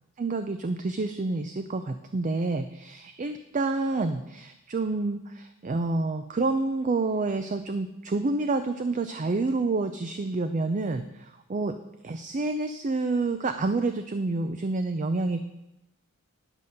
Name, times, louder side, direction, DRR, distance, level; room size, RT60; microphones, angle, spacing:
voice 1, 0.2-11.8 12.0-15.5, right 3 dB, 35° right, 8 dB, 0.5 m, -28 dB
11.0 x 5.4 x 6.5 m, 0.90 s
head